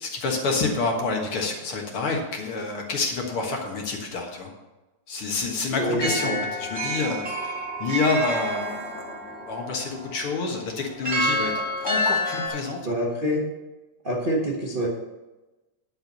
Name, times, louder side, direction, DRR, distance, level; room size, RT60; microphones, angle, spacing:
voice 1, 0.0-4.5 5.1-11.5 11.8-12.8, left 3 dB, 50° left, 1 dB, 2.1 m, -28 dB
voice 2, 5.8-6.4 12.8-13.4 14.0-14.9, equal, 70° right, -3 dB, 0.5 m, -26 dB
sound 1, 6.0-12.5, equal, 5° right, 2.3 m, -29 dB
11.0 x 5.7 x 6.6 m, 1.1 s
omnidirectional pair, 3.4 m